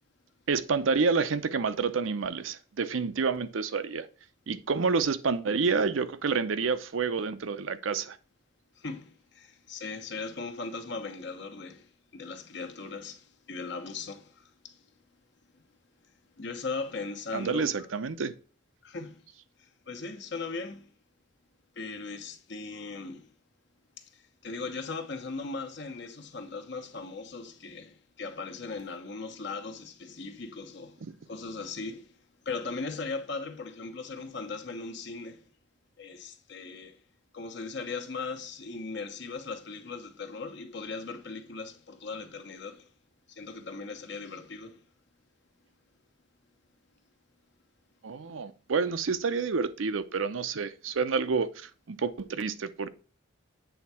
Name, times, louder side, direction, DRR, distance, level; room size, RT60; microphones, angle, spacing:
voice 1, 0.5-4.1 4.5-8.2 17.3-18.3 48.0-52.9, right 5 dB, 85° right, 0.6 m, -29 dB
voice 2, 8.8-14.8 16.4-17.9 18.8-19.3 19.6-20.9 21.7-23.3 24.0-32.2 32.4-35.5 36.0-37.0 37.3-42.9 43.3-44.8, left 4 dB, 65° left, 1.1 m, -39 dB
8.0 x 3.5 x 4.2 m
head